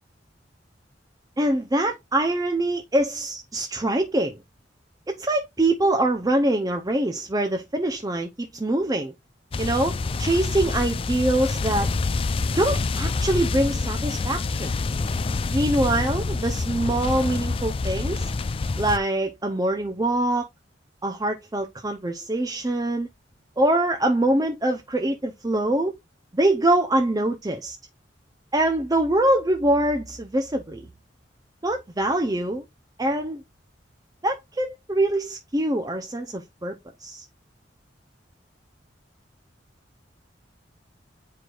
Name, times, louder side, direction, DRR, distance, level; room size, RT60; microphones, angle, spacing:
voice 1, 1.4-4.4 5.1-9.1 9.6-11.9 12.6-14.7 15.5-18.3 18.8-20.5 21.0-23.1 23.6-25.9 26.3-27.8 28.5-30.9 31.6-32.6 33.0-33.4 34.2-36.8 37.0-37.2, right 1 dB, 20° right, 0.6 m, -24 dB
sound 1, 9.5-19.0, left 3 dB, 30° left, 0.4 m, -27 dB
9.4 x 4.7 x 2.4 m
head